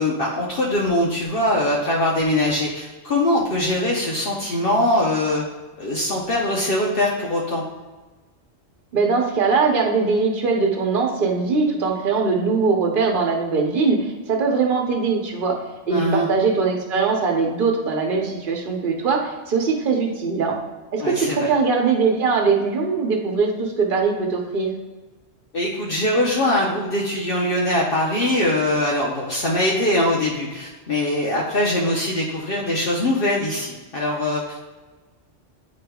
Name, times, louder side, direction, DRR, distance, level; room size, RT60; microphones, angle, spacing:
voice 1, 0.0-5.4 5.8-7.6 15.9-16.3 21.0-21.5 25.5-34.7, left 1 dB, 55° left, -4 dB, 1.0 m, -22 dB
voice 2, 8.9-15.6 15.9-20.6 20.9-24.7, right 4 dB, 50° right, 1 dB, 1.0 m, -21 dB
8.6 x 5.1 x 2.3 m, 1.2 s
omnidirectional pair, 1.2 m